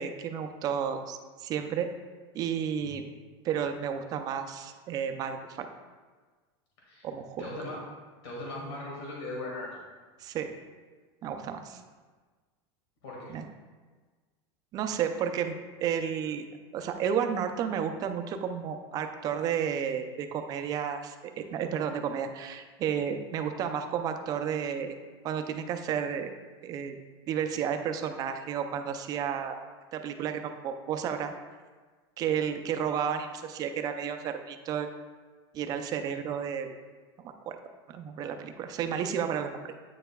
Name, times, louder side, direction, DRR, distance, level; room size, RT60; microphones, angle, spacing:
voice 1, 0.0-1.9 2.3-3.1 3.4-5.7 7.0-7.5 10.2-10.5 11.2-11.8 13.3-13.5 14.7-15.5 15.8-16.5 16.7-25.0 25.2-26.3 26.6-27.0 27.3-29.6 29.9-31.3 32.2-34.9 35.5-36.7 37.2-37.6 37.9-39.5, right 8 dB, 30° right, 6 dB, 0.4 m, -32 dB
voice 2, 7.4-7.8 8.2-9.7 13.0-13.3, left 2 dB, 90° left, -4 dB, 1.9 m, -38 dB
8.9 x 6.6 x 2.3 m, 1.4 s
supercardioid pair, 165°, 14 cm